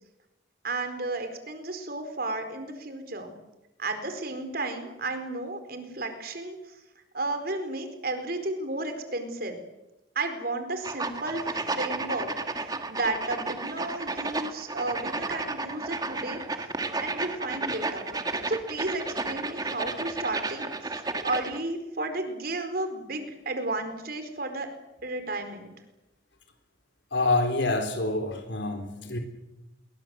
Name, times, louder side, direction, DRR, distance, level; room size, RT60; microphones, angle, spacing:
voice 1, 0.6-3.4 3.8-6.8 7.1-9.6 10.1-12.3 12.9-16.4 17.0-18.2 18.5-24.7 25.0-25.7, right 2 dB, 50° right, 7 dB, 4.4 m, -33 dB
sound 1, 10.8-21.6, right 3 dB, 20° right, 1.8 m, -32 dB
voice 2, 27.1-29.2, left 2 dB, 65° left, 4 dB, 3.8 m, -27 dB
28.0 x 23.0 x 7.8 m, 0.98 s
head